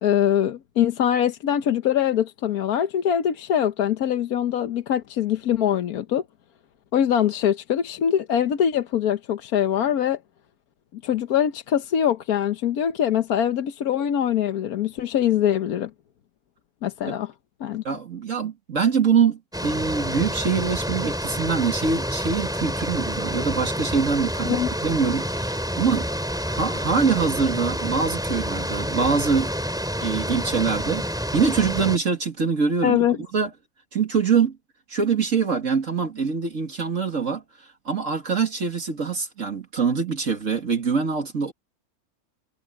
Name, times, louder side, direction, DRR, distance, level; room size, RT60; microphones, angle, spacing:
voice 1, 0.0-6.2 6.9-10.2 10.9-15.9 16.8-17.3 17.6-17.8 24.4-24.7 32.8-33.2, left 9 dB, 75° left, 1.4 m, -23 dB
voice 2, 17.8-26.1 26.4-29.5 30.0-31.0 31.3-33.0 33.3-33.5 33.9-34.5 34.9-37.4 37.9-41.5, right 5 dB, 55° right, 2.6 m, -24 dB
sound 1, 19.5-32.0, equal, ahead, 3.7 m, -28 dB
omnidirectional pair, 1.6 m